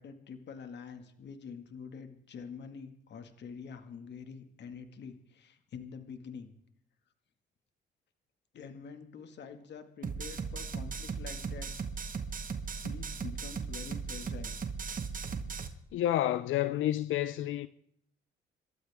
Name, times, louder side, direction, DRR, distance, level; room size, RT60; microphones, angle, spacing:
voice 1, 0.0-6.5 8.5-11.7 12.8-14.6, left 6 dB, 60° left, 2.0 m, -46 dB
sound 1, 10.0-15.7, right 5 dB, 45° right, 1.7 m, -37 dB
voice 2, 15.9-17.7, left 13 dB, 80° left, 0.6 m, -29 dB
27.5 x 13.0 x 3.6 m
cardioid pair, 90°, 20 cm